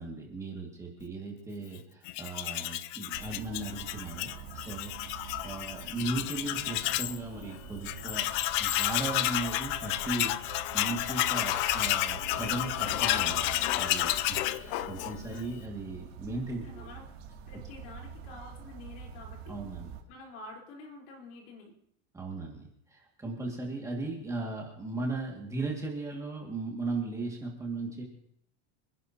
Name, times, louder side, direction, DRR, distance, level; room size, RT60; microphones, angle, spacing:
voice 1, 0.0-8.3 8.6-16.9 19.5-19.9 22.1-28.0, right 2 dB, 10° right, -1 dB, 2.0 m, -37 dB
Tools, 2.1-7.2 7.5-7.6 7.8-15.4, left 15 dB, 35° left, 0.4 m, -31 dB
sound 1, 3.1-20.0, right 7 dB, 70° right, 2.6 m, -46 dB
voice 2, 16.3-17.1 17.5-19.6 20.1-21.7, left 3 dB, 55° left, 0 dB, 4.0 m, -48 dB
26.5 x 11.0 x 2.8 m, 0.70 s
supercardioid pair, 165°, 33 cm